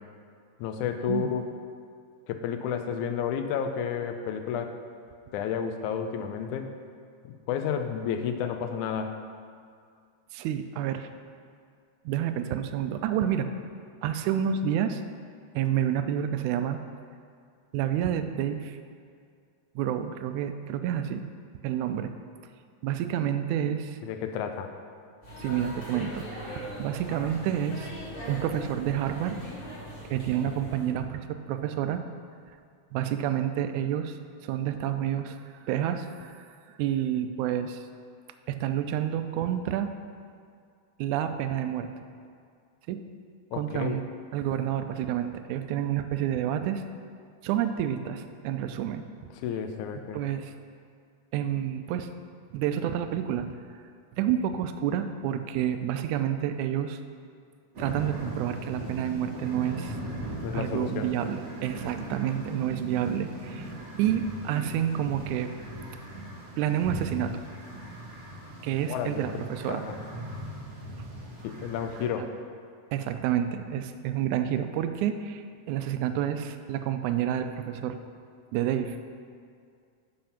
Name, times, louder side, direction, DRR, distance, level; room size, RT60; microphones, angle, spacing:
voice 1, 0.6-1.5 2.3-4.8 5.3-6.7 7.2-9.1 24.0-24.7 43.5-44.0 49.4-50.2 60.4-61.1 68.9-70.0 71.4-72.3, left 7 dB, 85° left, 7 dB, 2.1 m, -31 dB
voice 2, 10.3-11.1 12.1-13.5 14.0-15.0 15.5-16.8 17.7-18.8 19.8-21.2 21.6-22.1 22.8-24.0 25.4-27.9 28.3-29.4 30.1-32.0 32.9-36.5 36.8-37.9 38.5-39.9 41.0-41.9 42.9-43.0 43.5-44.0 44.3-46.8 47.4-49.0 50.1-50.5 51.3-52.1 52.5-53.6 54.1-57.0 57.8-60.0 60.5-63.7 64.0-65.5 66.6-67.3 68.6-69.8 72.2-72.3 72.9-78.0 78.5-79.0, right 10 dB, 85° right, 8 dB, 2.0 m, -29 dB
sound 1, 25.2-30.9, equal, 20° left, 2.0 m, -40 dB
sound 2, 57.7-72.1, right 1 dB, 55° right, 0.8 m, -39 dB
7.6 x 5.9 x 5.7 m, 2.2 s
omnidirectional pair, 3.4 m